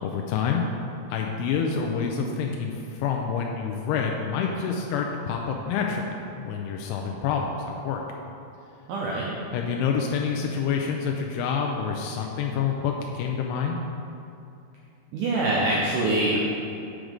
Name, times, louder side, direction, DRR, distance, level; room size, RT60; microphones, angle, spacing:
voice 1, 0.0-0.6 1.1-8.0 9.5-13.8, left 6 dB, 90° left, 1 dB, 2.6 m, -27 dB
voice 2, 8.9-9.4 15.1-16.4, right 2 dB, 85° right, -4 dB, 1.8 m, -24 dB
6.4 x 6.1 x 5.2 m, 2.6 s
omnidirectional pair, 4.6 m